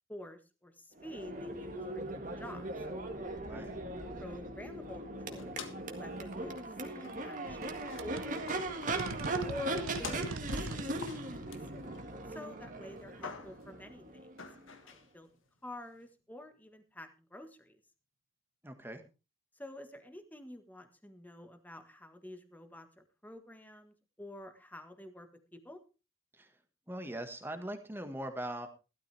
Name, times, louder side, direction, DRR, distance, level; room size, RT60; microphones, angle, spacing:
voice 1, 0.1-2.0 2.4-2.7 4.2-5.0 5.3-5.6 5.9-8.9 9.4-11.4 12.3-14.3 14.8-15.3 15.6-17.8 19.5-25.8, left 1 dB, 10° left, 7 dB, 1.5 m, -49 dB
Crowd / Race car auto racing / Accelerating revving vroom, 1.0-14.8, right 2 dB, 40° right, 1.8 m, -39 dB
voice 2, 3.4-3.7 18.6-19.0 26.3-26.6 26.9-28.7, right 1 dB, 10° right, 7 dB, 1.6 m, -41 dB
sound 1, 5.3-6.0 6.3-6.4 7.0-7.4 7.7-12.4 12.7-13.7 14.4-15.1, left 4 dB, 75° left, 1.7 m, -47 dB
sound 2, 7.5-13.9, right 2 dB, 90° right, 1.2 m, -45 dB
16.0 x 12.5 x 3.4 m, 0.31 s
head